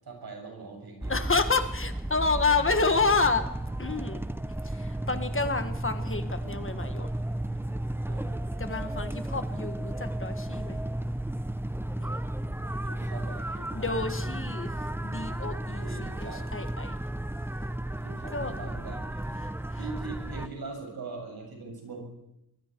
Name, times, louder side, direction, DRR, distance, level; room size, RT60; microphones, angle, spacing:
voice 1, 0.0-1.3 5.4-5.5 8.1-8.5 12.4-13.9 15.7-16.5 18.0-19.2 19.8-22.0, right 4 dB, 75° right, 1 dB, 7.1 m, -42 dB
sound 1, 1.0-20.5, right 1 dB, 5° right, 0.6 m, -33 dB
voice 2, 1.1-3.5 3.8-4.2 4.6-7.1 8.6-10.8 12.0-12.1 13.7-17.0 18.3-18.5 19.4-19.8, left 4 dB, 35° left, 8 dB, 1.5 m, -29 dB
24.0 x 24.0 x 4.6 m, 0.89 s
wide cardioid pair, 145°, 37 cm